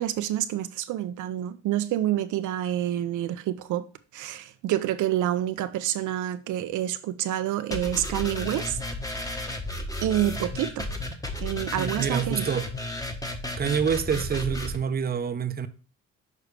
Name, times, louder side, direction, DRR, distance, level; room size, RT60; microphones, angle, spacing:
voice 1, 0.0-3.8 4.1-8.8 10.0-10.8 11.4-12.4, right 12 dB, 80° right, 0.6 m, -28 dB
sound 1, 7.7-14.8, left 1 dB, 10° left, 1.1 m, -33 dB
voice 2, 11.8-12.7 13.6-15.7, right 7 dB, 30° right, 0.6 m, -27 dB
6.7 x 4.7 x 3.2 m
cardioid pair, 90°, 30 cm